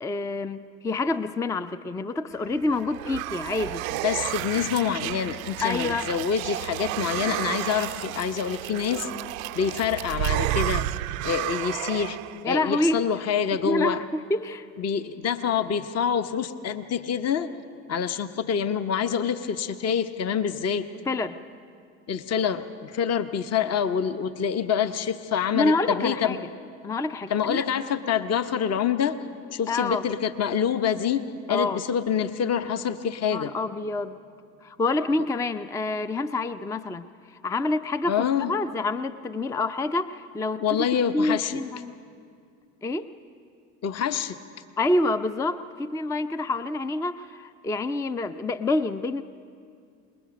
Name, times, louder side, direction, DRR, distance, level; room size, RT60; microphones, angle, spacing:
voice 1, 0.0-3.8 5.6-6.1 12.4-13.0 13.6-14.7 20.9-21.4 25.5-26.4 26.8-27.7 29.7-30.0 31.5-31.8 33.3-34.2 34.6-40.6 41.1-41.9 42.8-43.1 44.8-49.2, left 2 dB, 10° left, 13 dB, 0.4 m, -27 dB
sound 1, 2.5-12.5, right 16 dB, 80° right, 0.5 m, -31 dB
voice 2, 3.9-9.1 9.5-10.9 11.2-12.2 12.4-14.0 14.8-17.5 17.9-20.9 22.1-26.4 27.3-29.2 29.5-33.5 38.0-38.5 40.6-41.6 43.8-44.4, left 7 dB, 40° left, 10 dB, 0.9 m, -26 dB
27.0 x 20.5 x 5.2 m, 2.4 s
hypercardioid pair, 70°, 40 cm